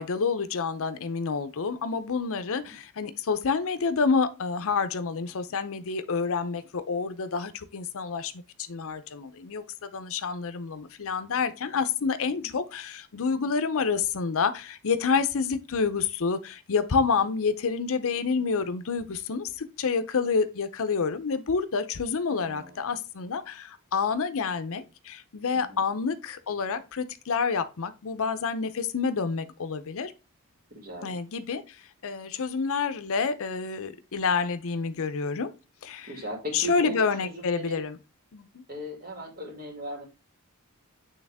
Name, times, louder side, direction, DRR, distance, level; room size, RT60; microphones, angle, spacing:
voice 1, 0.0-8.3 8.6-9.6 9.9-30.1 31.0-31.8 32.0-35.5 35.8-36.1 36.5-38.0 38.3-38.6, left 5 dB, 65° left, 0.6 m, -28 dB
voice 2, 22.3-22.8 25.5-25.8 30.7-31.1 36.0-37.8 38.7-40.1, equal, 40° right, 2.3 m, -38 dB
8.7 x 3.4 x 3.5 m
head